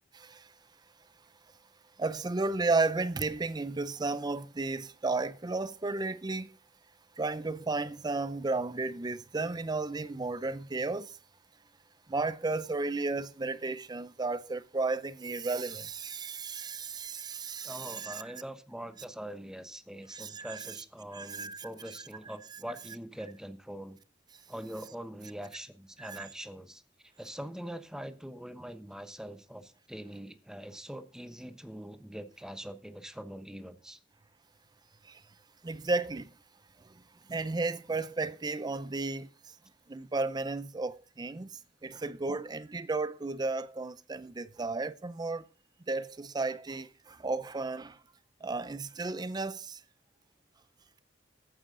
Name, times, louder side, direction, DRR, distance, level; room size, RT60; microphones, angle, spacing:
voice 1, 0.1-0.5 2.0-6.6 7.2-11.2 12.1-18.2 20.1-20.8 21.1-21.9 26.0-26.3 35.0-35.2 35.6-36.3 36.8-37.0 37.3-39.3 39.9-45.5 45.9-48.0 48.4-49.8, right 3 dB, 20° right, 0.5 m, -33 dB
voice 2, 17.6-24.0 24.5-26.8 27.2-34.0 41.8-41.9, equal, 5° right, 1.0 m, -43 dB
14.0 x 9.3 x 3.8 m
head